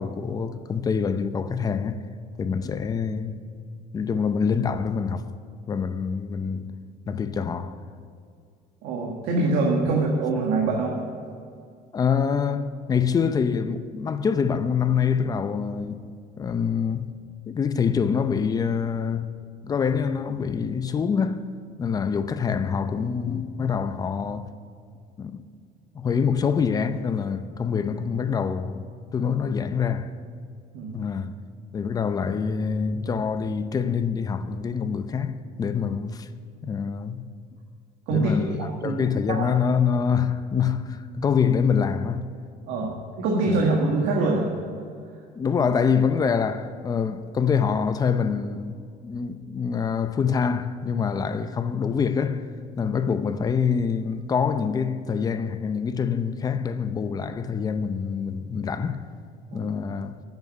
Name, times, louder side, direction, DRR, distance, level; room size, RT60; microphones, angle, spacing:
voice 1, 0.0-2.0 2.4-3.4 3.9-5.3 5.7-6.8 7.1-7.7 9.9-10.0 11.9-16.1 16.4-17.1 17.5-19.3 19.6-21.5 21.8-24.5 25.2-25.5 25.9-28.8 29.1-30.1 30.9-31.3 31.7-36.3 36.6-37.3 38.1-38.6 38.8-42.3 42.8-42.9 43.5-43.6 45.4-52.5 52.8-59.0 59.5-60.2, left 6 dB, 25° left, 0.5 m, -25 dB
voice 2, 8.8-11.0 30.7-30.9 38.1-38.6 38.8-39.0 39.3-39.5 42.7-44.5 59.5-59.7, right 3 dB, 85° right, 1.8 m, -24 dB
10.5 x 8.0 x 9.9 m
cardioid pair, 165°, 16 cm